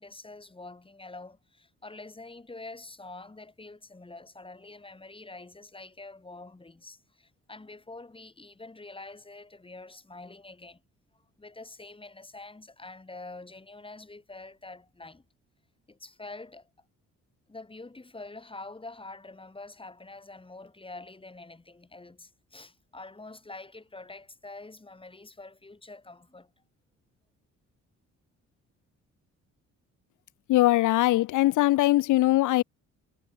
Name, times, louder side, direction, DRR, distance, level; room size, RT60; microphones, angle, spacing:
voice 1, 0.0-10.8 11.4-15.2 15.9-16.7 17.5-26.5, left 2 dB, 15° left, 5.6 m, -46 dB
voice 2, 30.5-32.6, left 16 dB, 85° left, 1.1 m, -21 dB
cardioid pair, 90°, 30 cm